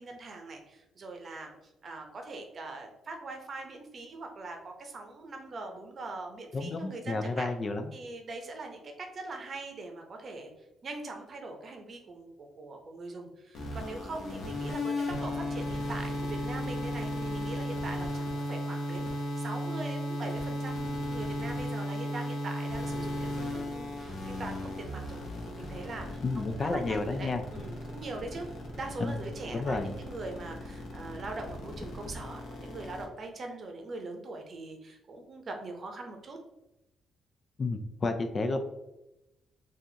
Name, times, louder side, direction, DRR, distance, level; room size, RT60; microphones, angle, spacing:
voice 1, 0.0-1.5 1.8-7.5 7.9-10.5 10.8-25.2 25.5-36.4, right 2 dB, 45° right, 3 dB, 0.7 m, -42 dB
voice 2, 6.5-7.9 26.2-27.4 29.0-29.1 29.5-29.9 37.6-38.6, left 3 dB, 35° left, 7 dB, 0.4 m, -31 dB
sound 1, 13.5-33.0, left 1 dB, 65° left, 0.9 m, -35 dB
4.0 x 2.5 x 2.8 m, 0.91 s
cardioid pair, 90°, 0 cm